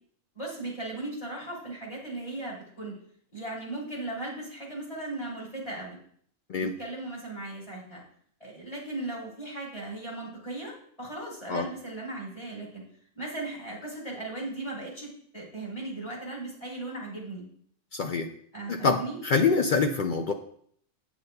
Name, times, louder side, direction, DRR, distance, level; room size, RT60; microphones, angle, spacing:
voice 1, 0.3-3.0 3.3-6.0 6.6-8.0 8.4-12.8 13.1-17.5 18.5-19.2, right 2 dB, 25° left, -3 dB, 2.9 m, -37 dB
voice 2, 17.9-18.3 18.7-20.3, left 4 dB, 75° left, 4 dB, 0.4 m, -25 dB
9.0 x 8.0 x 2.2 m, 0.62 s
omnidirectional pair, 1.5 m